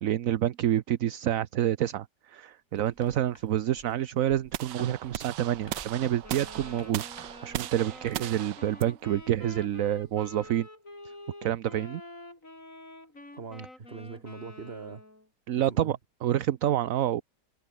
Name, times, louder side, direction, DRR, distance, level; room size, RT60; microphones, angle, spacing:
voice 1, 0.0-7.0 7.4-10.7 11.0-11.1 11.4-12.0 15.5-17.2, right 11 dB, 60° right, 1.0 m, -28 dB
sound 1, 2.7-8.3, right 1 dB, 15° right, 5.3 m, -53 dB
sound 2, 4.5-10.6, right 13 dB, 80° right, 1.4 m, -38 dB
Wind instrument woodwind instrument, 6.2-15.3, left 2 dB, 45° left, 7.6 m, -47 dB
voice 2, 13.4-15.0 15.6-16.0, right 5 dB, 35° right, 1.9 m, -42 dB
omnidirectional pair, 1.9 m